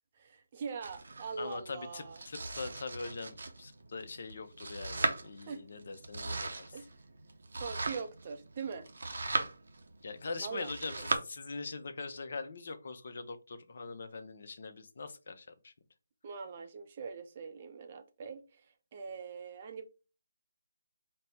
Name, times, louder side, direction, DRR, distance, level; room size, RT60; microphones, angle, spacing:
voice 1, 0.2-2.2 5.5-5.6 6.7-6.9 7.6-8.9 10.4-11.0 16.2-19.9, right 5 dB, 35° right, 0.5 m, -42 dB
Domestic sounds home sounds, 0.8-11.2, right 3 dB, 65° right, 0.8 m, -39 dB
voice 2, 1.4-6.8 10.0-15.7, left 4 dB, 50° left, 0.6 m, -42 dB
4.2 x 2.1 x 4.1 m
figure-of-eight pair, 160°, 0 cm